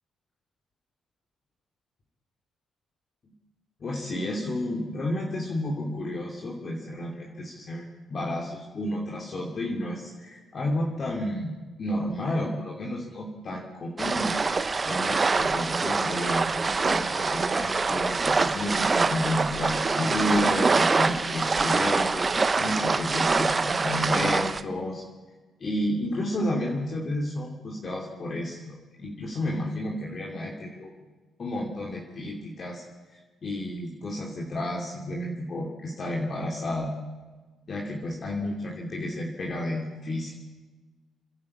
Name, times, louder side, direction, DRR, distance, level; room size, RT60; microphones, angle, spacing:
voice 1, 3.8-22.2 22.6-25.0 25.6-30.9 31.4-32.8 33.1-36.9 37.7-40.3, left 1 dB, 45° left, -1 dB, 2.9 m, -31 dB
sound 1, 14.0-24.6, right 4 dB, 30° right, 1.0 m, -25 dB
29.0 x 11.0 x 8.6 m, 1.3 s
cardioid pair, 90°, 0 cm